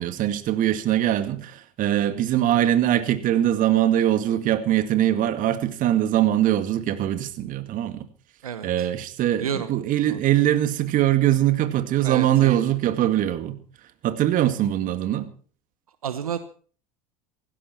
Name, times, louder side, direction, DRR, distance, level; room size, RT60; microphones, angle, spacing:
voice 1, 0.0-8.1 8.6-13.6 14.0-15.3, right 12 dB, 50° right, 2.2 m, -22 dB
voice 2, 8.4-8.9 9.4-9.7 10.0-10.2 12.0-12.6 16.0-16.4, right 8 dB, 85° right, 1.2 m, -30 dB
18.0 x 16.0 x 4.5 m
hypercardioid pair, 80°, 18 cm